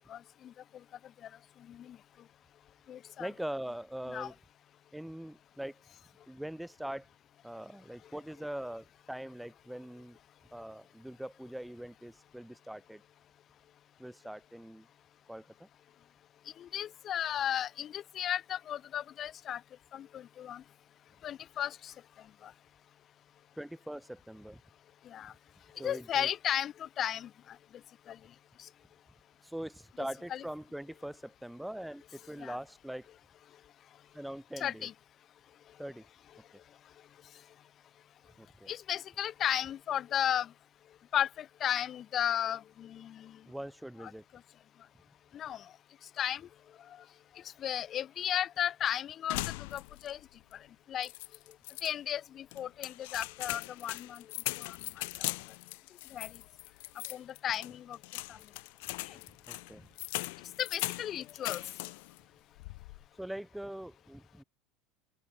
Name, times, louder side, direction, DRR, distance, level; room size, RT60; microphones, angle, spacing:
voice 1, 0.1-0.5 1.7-2.0 2.9-3.3 4.1-4.3 16.6-19.6 19.9-20.6 21.2-21.9 22.4-22.5 25.1-25.3 25.8-27.6 28.1-28.2 30.3-30.4 32.4-32.6 34.6-34.9 38.7-40.5 41.1-43.4 45.3-45.6 46.2-46.4 47.6-50.2 50.9-51.1 51.8-54.2 54.6-54.8 56.1-56.3 57.1-58.0 58.3-58.4 60.6-61.6, left 10 dB, 40° left, 1.2 m, -34 dB
voice 2, 3.2-4.4 4.9-5.8 6.3-7.1 7.4-10.2 10.5-13.0 14.0-14.9 15.3-15.7 23.6-24.6 25.8-26.3 29.4-33.1 34.1-34.9 35.8-36.0 36.5-36.6 38.3-38.7 43.4-44.2 59.5-59.9 63.2-64.4, right 1 dB, 5° right, 3.3 m, -42 dB
sound 1, 49.3-50.2 50.5-50.6 51.0-51.9 52.5-62.2 62.5-63.1, left 25 dB, 75° left, 1.2 m, -40 dB
open air
supercardioid pair, 110°, 0 cm